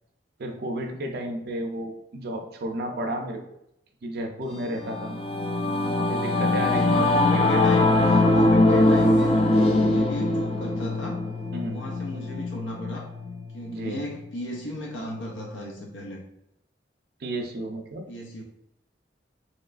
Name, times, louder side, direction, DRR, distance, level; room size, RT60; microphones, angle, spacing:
voice 1, 0.4-3.4 4.0-5.2 5.9-7.2 11.5-11.8 13.7-14.0 17.2-18.1, right 1 dB, 55° right, 4 dB, 0.4 m, -32 dB
Singing / Musical instrument, 4.6-14.3, left 2 dB, 30° left, 0.3 m, -22 dB
voice 2, 6.6-11.2 11.7-13.1 13.5-16.2 18.1-18.4, equal, 90° left, -1 dB, 0.5 m, -35 dB
3.1 x 3.0 x 2.4 m, 0.81 s
head